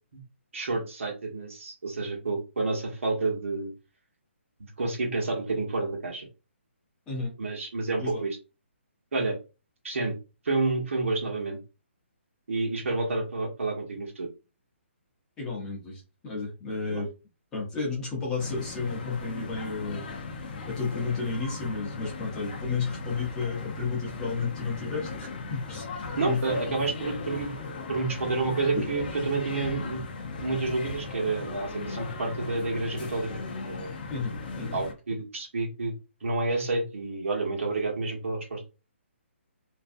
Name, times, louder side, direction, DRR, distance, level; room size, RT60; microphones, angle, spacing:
voice 1, 0.5-3.7 4.6-6.3 7.4-8.4 9.1-9.4 9.8-10.1 10.4-11.6 12.5-14.3 16.9-17.0 26.2-27.5 27.9-30.0 30.4-33.3 33.7-34.0 34.7-35.9 36.2-38.6, right 3 dB, 75° right, 1 dB, 1.0 m, -29 dB
voice 2, 15.4-17.1 17.5-25.9 26.2-26.6 34.1-34.8, left 4 dB, 10° left, -4 dB, 0.8 m, -32 dB
sound 1, 18.4-34.9, left 4 dB, 40° left, 0.6 m, -38 dB
2.5 x 2.2 x 2.5 m, 0.30 s
hypercardioid pair, 165°, 7 cm